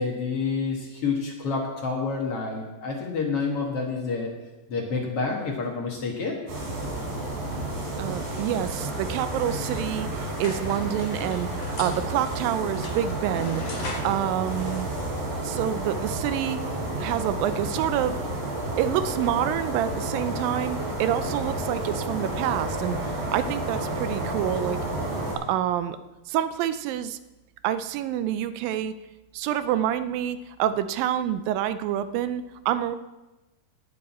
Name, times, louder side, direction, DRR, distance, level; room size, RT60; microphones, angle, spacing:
voice 1, 0.0-4.3 4.7-6.4, left 4 dB, 50° left, -1 dB, 2.1 m, -28 dB
sound 1, 6.5-25.3, right 1 dB, 65° right, 5.4 m, -31 dB
voice 2, 8.0-14.9 15.4-16.6 17.0-18.2 18.8-24.8 25.5-26.0 26.3-27.2 27.6-28.9 29.3-33.0, right 11 dB, 85° right, 12 dB, 2.4 m, -27 dB
sound 2, 10.3-15.6, left 2 dB, 75° left, 4.5 m, -40 dB
18.5 x 7.9 x 4.3 m, 1.1 s
omnidirectional pair, 4.0 m